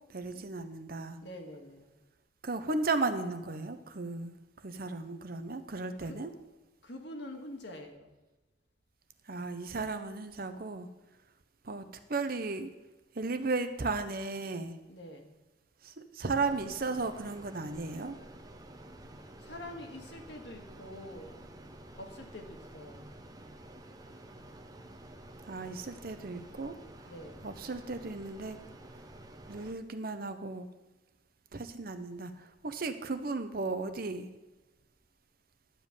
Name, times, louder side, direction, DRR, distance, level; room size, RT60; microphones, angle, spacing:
voice 1, 0.1-1.2 2.4-4.3 4.6-6.3 9.3-10.9 11.6-11.8 12.1-12.7 13.1-14.7 15.8-18.2 25.5-26.7 27.4-28.6 29.5-30.7 31.5-34.3, right 3 dB, 55° right, 9 dB, 0.9 m, -35 dB
voice 2, 1.2-2.0 6.0-6.3 6.8-8.1 14.9-15.4 19.2-21.5 22.0-23.1 27.1-27.5, left 1 dB, 70° left, 3 dB, 1.8 m, -46 dB
sound 1, 16.3-29.7, right 1 dB, 20° right, 0.9 m, -50 dB
11.5 x 5.2 x 8.4 m, 1.1 s
head